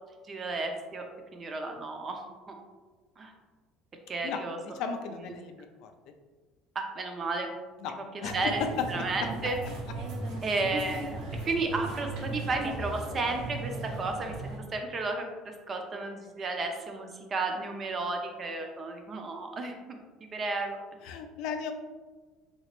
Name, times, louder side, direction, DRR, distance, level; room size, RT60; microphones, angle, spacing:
voice 1, 0.3-1.1 1.3-2.6 3.2-3.3 4.1-4.8 5.1-5.4 6.7-7.5 7.8-9.6 10.4-14.3 14.7-20.0 20.3-20.8, right 3 dB, 30° right, 3 dB, 0.5 m, -33 dB
voice 2, 4.2-5.9 7.8-7.9 8.2-8.3 21.0-21.7, left 6 dB, 70° left, 6 dB, 0.4 m, -37 dB
sound 1, 8.2-14.6, right 2 dB, 75° right, 1.0 m, -37 dB
3.1 x 2.9 x 2.9 m, 1.3 s
cardioid pair, 125°, 0 cm